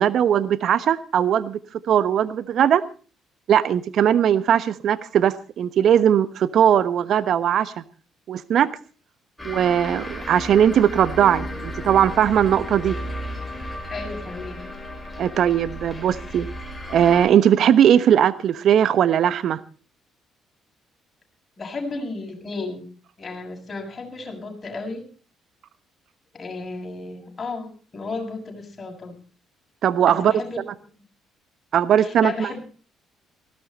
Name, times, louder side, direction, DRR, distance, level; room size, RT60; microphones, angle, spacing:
voice 1, 0.0-1.6 1.9-2.8 3.5-7.8 8.3-8.7 9.4-13.0 15.2-16.5 16.9-19.6 29.8-30.3 31.7-32.5, right 9 dB, 60° right, 15 dB, 1.1 m, -19 dB
sound 1, 9.4-17.3, left 1 dB, 10° left, 5.4 m, -34 dB
voice 2, 13.9-14.6 21.6-22.8 23.2-25.1 26.3-29.2 30.1-30.6 32.0-32.6, left 3 dB, 35° left, 1 dB, 7.3 m, -33 dB
18.5 x 16.0 x 4.2 m, 0.39 s
hypercardioid pair, 50°, 0 cm